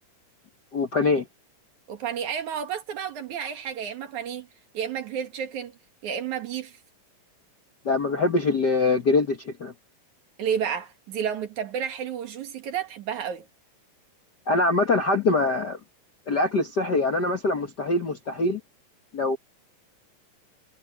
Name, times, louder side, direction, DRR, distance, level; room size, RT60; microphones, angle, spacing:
voice 1, 0.7-1.2 7.8-9.7 14.5-15.8 16.3-18.6 19.1-19.4, left 3 dB, 45° left, 1.4 m, -23 dB
voice 2, 1.9-4.5 4.7-5.8 6.0-6.8 10.4-13.5, right 8 dB, 65° right, 3.1 m, -31 dB
omnidirectional pair, 3.8 m